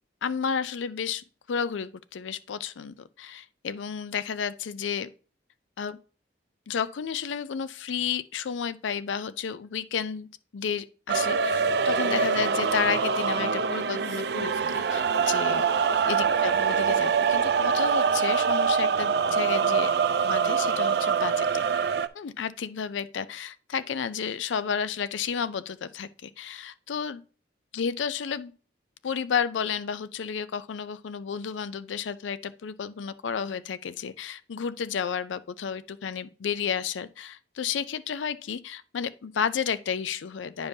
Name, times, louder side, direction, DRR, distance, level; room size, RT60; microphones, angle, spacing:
voice 1, 0.2-5.1 5.8-6.0 6.7-10.3 10.5-15.7 16.1-19.9 20.2-21.6 22.1-27.2 27.7-28.5 29.0-40.7, left 7 dB, 85° left, 0.4 m, -32 dB
sound 1, 11.1-22.1, right 6 dB, 60° right, 0.4 m, -24 dB
9.6 x 5.2 x 2.7 m
head